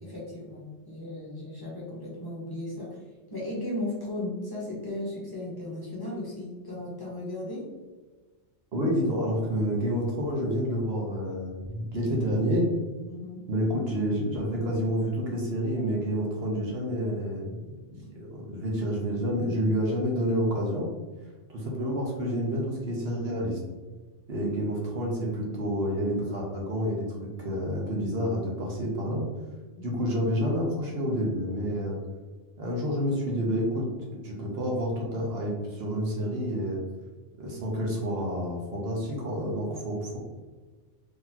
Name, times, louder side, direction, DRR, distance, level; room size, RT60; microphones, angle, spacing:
voice 1, 0.0-3.0 3.3-7.6 13.1-13.4 29.8-29.9, left 1 dB, 20° left, -6 dB, 1.1 m, -36 dB
voice 2, 8.7-12.7 13.5-17.6 17.9-20.9 21.5-23.6 24.3-29.2 29.8-32.0 32.6-33.9 34.2-36.8 37.4-40.2, equal, 60° right, -2 dB, 1.1 m, -29 dB
4.0 x 3.1 x 2.8 m, 1.3 s
omnidirectional pair, 1.2 m